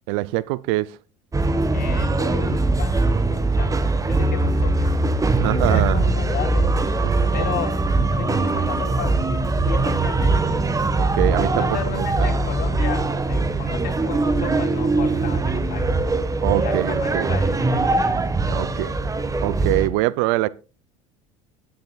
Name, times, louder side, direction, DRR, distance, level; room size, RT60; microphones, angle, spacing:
voice 1, 0.1-1.0 5.4-6.0 7.0-7.2 10.9-11.7 11.9-12.3 16.4-17.3 18.5-18.9 19.4-20.5, right 19 dB, 65° right, 0.6 m, -24 dB
sound 1, 1.3-19.9, right 2 dB, 20° right, 1.3 m, -21 dB
voice 2, 1.7-3.7 4.1-5.0 5.3-6.9 7.3-9.2 9.6-10.6 11.4-16.0 16.5-18.9, left 7 dB, 55° left, 3.7 m, -33 dB
19.0 x 10.5 x 2.4 m
hypercardioid pair, 75°, 18 cm